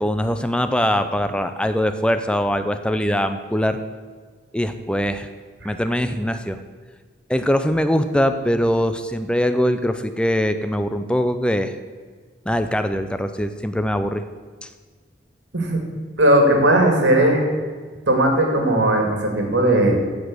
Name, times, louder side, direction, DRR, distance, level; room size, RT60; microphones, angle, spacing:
voice 1, 0.0-3.8 4.5-5.3 5.6-6.6 7.3-11.8 12.5-14.2 14.6-14.7, equal, 5° left, 9 dB, 0.5 m, -22 dB
voice 2, 16.2-17.4 18.1-19.9, right 1 dB, 90° right, 3 dB, 2.4 m, -17 dB
14.5 x 5.2 x 7.7 m, 1.5 s
head